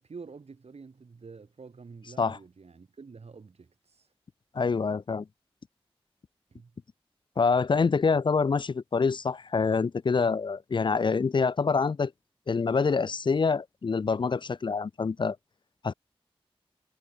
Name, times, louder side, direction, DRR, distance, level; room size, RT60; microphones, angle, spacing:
voice 1, 0.0-4.1 6.5-6.7, right 4 dB, 85° right, 5.3 m, -48 dB
voice 2, 4.5-5.3 7.4-12.1 12.5-15.4 15.8-15.9, left 5 dB, 50° left, 0.4 m, -26 dB
cardioid pair, 45°, 10 cm